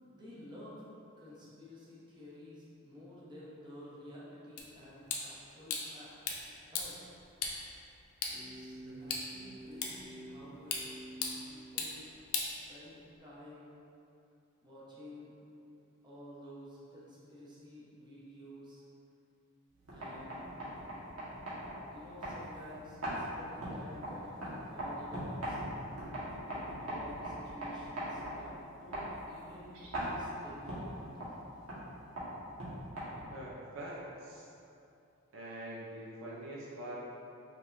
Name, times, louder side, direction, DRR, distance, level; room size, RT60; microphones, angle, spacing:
voice 1, 0.0-0.8 1.2-7.0 8.3-10.9 11.4-12.1 12.5-13.7 14.6-15.3 16.0-18.8 19.9-20.4 21.9-25.6 26.5-31.4, left 1 dB, 20° right, -8 dB, 0.9 m, -52 dB
sound 1, 4.6-13.2, left 4 dB, 80° left, 0.6 m, -41 dB
sound 2, 8.3-11.5, right 1 dB, 5° left, 0.4 m, -49 dB
sound 3, 19.7-33.5, equal, 80° right, 1.4 m, -41 dB
voice 2, 33.3-34.5 35.3-37.0, right 1 dB, 65° right, -5 dB, 0.6 m, -44 dB
5.3 x 3.5 x 2.6 m, 2.7 s
head